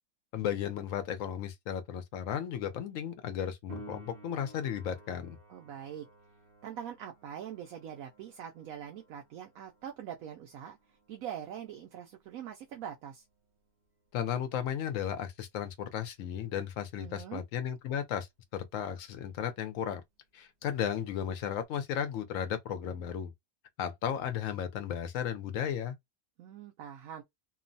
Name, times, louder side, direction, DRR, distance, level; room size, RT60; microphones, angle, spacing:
voice 1, 0.3-5.4 14.1-18.3 18.5-20.0 20.3-23.3 23.8-26.0, left 9 dB, 70° left, 0.9 m, -34 dB
Piano, 3.7-14.1 21.6-21.7, right 2 dB, 50° right, 0.7 m, -55 dB
voice 2, 5.5-6.1 6.6-10.8 11.1-13.2 17.0-17.4 26.4-27.2, right 9 dB, 75° right, 1.0 m, -43 dB
3.0 x 2.0 x 2.6 m
omnidirectional pair, 1.5 m